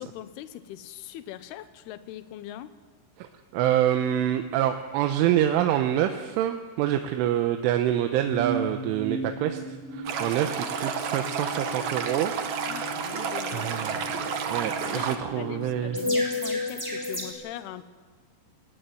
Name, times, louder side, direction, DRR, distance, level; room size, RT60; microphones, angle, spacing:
voice 1, 0.0-2.7 12.7-13.9 14.6-17.8, left 12 dB, 75° left, 12 dB, 2.6 m, -41 dB
voice 2, 3.2-12.3 13.5-16.0, right 11 dB, 90° right, 6 dB, 3.4 m, -26 dB
sound 1, 8.3-17.3, left 1 dB, 5° right, 4.2 m, -34 dB
Stream, 10.1-15.2, right 7 dB, 70° right, 1.8 m, -31 dB
20.0 x 19.5 x 9.2 m, 1.4 s
omnidirectional pair, 5.5 m